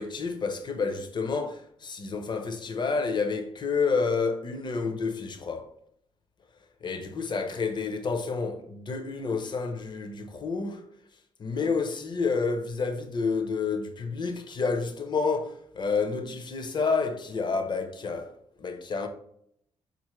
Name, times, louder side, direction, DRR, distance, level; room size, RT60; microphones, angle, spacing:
voice 1, 0.0-5.7 6.8-10.9 11.4-18.3 18.6-19.1, left 4 dB, 40° left, 0.6 m, -29 dB
3.8 x 2.5 x 3.0 m
cardioid pair, 65°, 11 cm